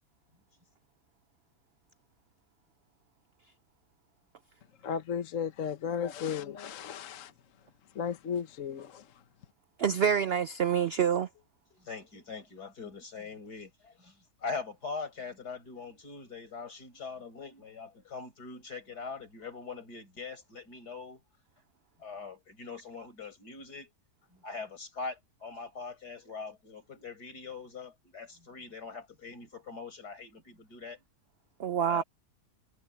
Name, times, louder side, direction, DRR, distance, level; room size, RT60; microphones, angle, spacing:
voice 1, 4.8-7.3 7.9-9.1, left 7 dB, 55° left, 1.3 m, -34 dB
voice 2, 9.8-11.3 31.6-32.0, right 8 dB, 85° right, 0.5 m, -27 dB
voice 3, 11.7-21.2 22.0-23.9 24.3-31.0 31.8-32.0, left 4 dB, 75° left, 5.5 m, -42 dB
omnidirectional pair, 1.7 m